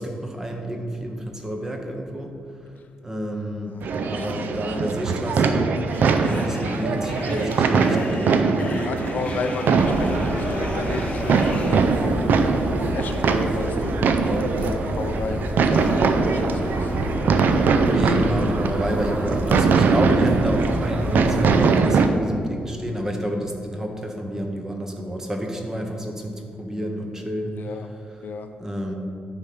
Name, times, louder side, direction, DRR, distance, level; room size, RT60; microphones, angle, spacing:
voice 1, 0.0-2.3 3.0-6.0 6.3-8.6 17.7-27.6 28.6-28.9, equal, 15° right, 3 dB, 0.8 m, -29 dB
voice 2, 3.7-4.9 8.8-12.5 12.9-16.9 27.6-27.9 28.2-28.5, left 4 dB, 60° left, 7 dB, 0.5 m, -33 dB
sound 1, 3.8-22.1, right 4 dB, 65° right, 0.5 m, -22 dB
sound 2, 5.9-11.8, left 3 dB, 40° left, 0.9 m, -38 dB
sound 3, 9.7-21.8, equal, 35° right, 1.6 m, -29 dB
9.6 x 3.6 x 5.8 m, 2.4 s
wide cardioid pair, 145°, 3 cm